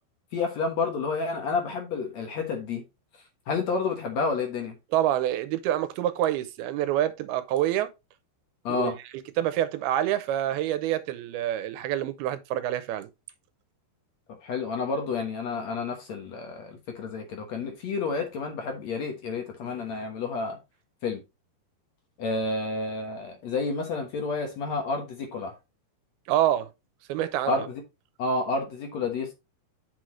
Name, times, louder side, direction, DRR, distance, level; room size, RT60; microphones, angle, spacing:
voice 1, 0.3-2.8 3.5-4.8 8.6-9.0 14.4-20.6 21.0-21.2 22.2-25.5 27.5-27.8 28.2-29.3, left 4 dB, 60° left, 2.0 m, -30 dB
voice 2, 4.9-7.9 8.7-8.9 9.4-13.1 26.3-26.7 27.1-27.7, right 12 dB, 85° right, 2.7 m, -27 dB
8.1 x 6.4 x 3.2 m
omnidirectional pair, 4.5 m